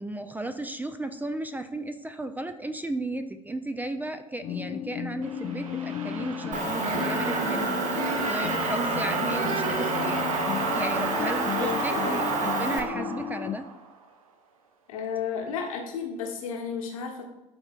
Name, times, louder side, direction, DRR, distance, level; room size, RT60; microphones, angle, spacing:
voice 1, 0.0-10.2 10.7-13.7, right 2 dB, 10° right, 9 dB, 0.5 m, -34 dB
sound 1, 4.4-13.6, left 10 dB, 40° left, 0.5 m, -34 dB
sound 2, 5.2-14.1, right 5 dB, 75° right, 0.7 m, -33 dB
Motor vehicle (road) / Engine, 6.5-12.8, right 2 dB, 45° right, 1.2 m, -30 dB
voice 2, 11.5-12.2 14.9-17.2, left 7 dB, 70° left, 2 dB, 1.2 m, -33 dB
12.0 x 4.3 x 2.5 m, 1.0 s
figure-of-eight pair, 60°, 18 cm